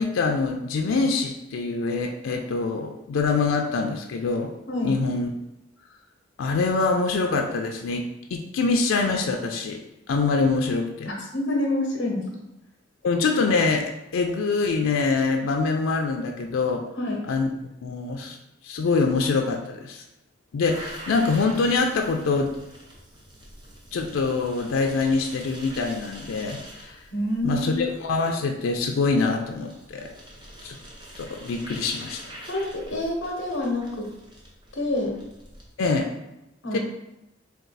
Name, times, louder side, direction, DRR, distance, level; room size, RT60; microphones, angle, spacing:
voice 1, 0.0-4.5 4.8-5.3 6.4-9.8 10.1-11.1 13.0-16.9 17.3-17.5 17.8-18.4 18.6-20.0 20.5-22.5 23.9-27.0 27.4-30.1 30.6-30.8 31.2-32.2 35.8-36.1 36.7-36.8, left 4 dB, 85° left, 3 dB, 0.4 m, -24 dB
voice 2, 4.7-5.0 11.1-12.2 17.0-17.2 27.1-27.8 32.5-34.1 34.7-35.1 36.6-36.8, left 1 dB, 65° left, 0 dB, 0.8 m, -27 dB
sound 1, 20.6-35.7, right 1 dB, 25° right, 0.8 m, -45 dB
4.3 x 2.3 x 3.9 m, 0.89 s
head